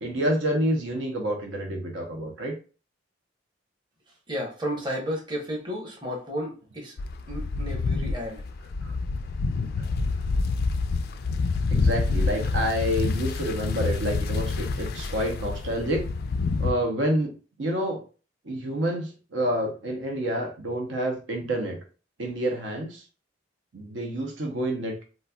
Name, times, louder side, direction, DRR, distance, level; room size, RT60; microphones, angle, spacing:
voice 1, 0.0-2.5 9.8-9.9 11.7-16.1 16.6-18.0 18.4-21.8 22.2-23.0 23.7-25.0, equal, 75° right, 2 dB, 0.7 m, -28 dB
voice 2, 4.3-6.9 7.3-8.4, equal, 25° right, -1 dB, 0.9 m, -32 dB
sound 1, 7.0-16.7, left 3 dB, 50° left, 0.3 m, -27 dB
4.0 x 2.5 x 2.2 m, 0.36 s
head